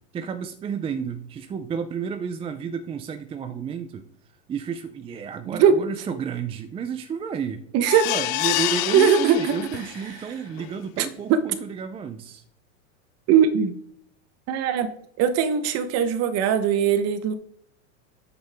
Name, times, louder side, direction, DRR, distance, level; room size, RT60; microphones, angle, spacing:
voice 1, 0.1-4.1 4.5-7.6 8.0-12.4, right 7 dB, 15° right, 9 dB, 0.5 m, -31 dB
voice 2, 5.5-5.8 7.7-8.1 8.9-9.6 11.0-11.4 13.3-13.7 14.5-17.3, right 8 dB, 40° right, 12 dB, 1.2 m, -20 dB
sound 1, 7.9-10.1 10.6-10.7 11.0-11.1, left 19 dB, 40° left, 0.5 m, -27 dB
8.9 x 8.0 x 3.5 m, 0.70 s
supercardioid pair, 130°, 39 cm